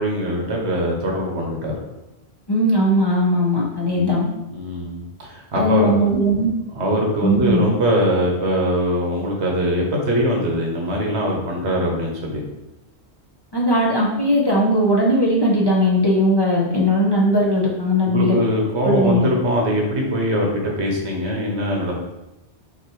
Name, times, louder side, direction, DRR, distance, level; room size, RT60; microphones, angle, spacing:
voice 1, 0.0-1.7 3.9-4.1 4.5-5.9 6.7-12.4 18.0-22.0, equal, 80° right, 0 dB, 1.3 m, -22 dB
voice 2, 2.5-4.3 5.5-6.5 7.2-7.7 13.5-18.4 18.8-19.3, equal, 25° left, -4 dB, 0.7 m, -18 dB
6.0 x 2.9 x 3.0 m, 0.96 s
omnidirectional pair, 1.1 m